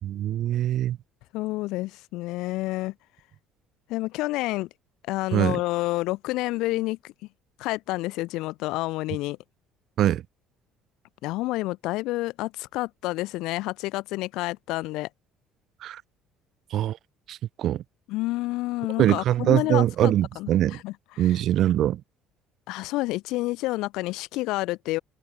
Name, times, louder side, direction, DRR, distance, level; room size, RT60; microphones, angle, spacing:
voice 1, 0.0-1.0 5.3-5.6 10.0-10.2 15.8-16.0 16.7-17.0 17.3-17.8 19.0-20.8 21.2-22.0, right 12 dB, 60° right, 1.5 m, -23 dB
voice 2, 1.3-2.9 3.9-4.7 5.1-7.0 7.6-9.4 11.2-15.1 18.1-21.3 22.7-25.0, left 19 dB, 75° left, 1.0 m, -29 dB
supercardioid pair, 80°, 0 cm